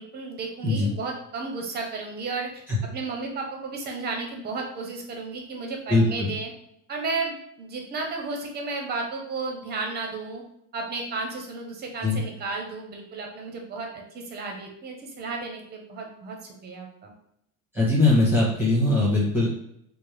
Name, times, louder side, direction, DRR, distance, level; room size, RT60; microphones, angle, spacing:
voice 1, 0.0-6.5 6.9-10.4 10.7-17.1, right 3 dB, 25° right, 1 dB, 0.7 m, -33 dB
voice 2, 5.9-6.3 12.0-12.2 17.7-19.5, left 2 dB, 5° right, -7 dB, 1.1 m, -21 dB
4.3 x 2.1 x 3.3 m, 0.77 s
cardioid pair, 160°, 36 cm